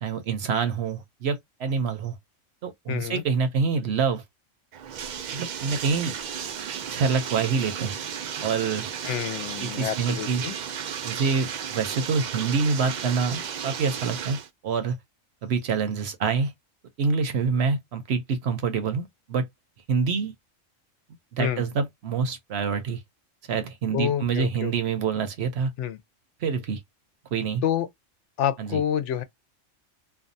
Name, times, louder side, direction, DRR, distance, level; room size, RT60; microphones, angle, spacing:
voice 1, 0.0-2.2 2.6-4.2 5.3-6.1 6.9-8.0 8.4-8.9 9.6-10.5 11.0-14.4 14.6-15.0 15.4-16.5 17.0-19.5 19.9-20.3 21.3-23.0 23.5-25.7 26.4-26.8 27.3-27.6 28.6-28.8, right 5 dB, 60° right, 0.9 m, -26 dB
voice 2, 2.9-3.2 9.0-10.5 21.4-21.6 23.9-24.7 25.8-26.0 27.6-27.9 28.4-29.2, left 10 dB, 70° left, 0.9 m, -28 dB
Bathtub (filling or washing), 4.7-14.5, right 8 dB, 85° right, 0.4 m, -34 dB
2.6 x 2.3 x 2.6 m
omnidirectional pair, 1.3 m